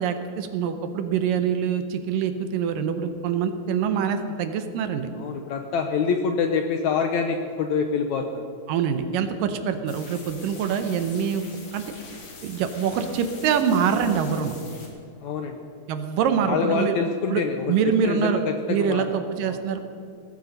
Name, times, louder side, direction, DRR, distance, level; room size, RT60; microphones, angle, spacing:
voice 1, 0.0-5.1 8.7-11.4 11.7-11.8 12.4-14.6 15.9-17.0 17.3-18.4 18.7-19.8, right 7 dB, 75° right, 8 dB, 2.5 m, -25 dB
voice 2, 5.2-8.4 15.2-15.6 16.4-17.8 18.0-18.4 18.7-19.0 19.4-19.6, left 5 dB, 75° left, 5 dB, 1.8 m, -25 dB
sound 1, 9.9-14.9, left 3 dB, 50° left, 3.5 m, -44 dB
18.0 x 15.0 x 5.3 m, 2.5 s
omnidirectional pair, 4.2 m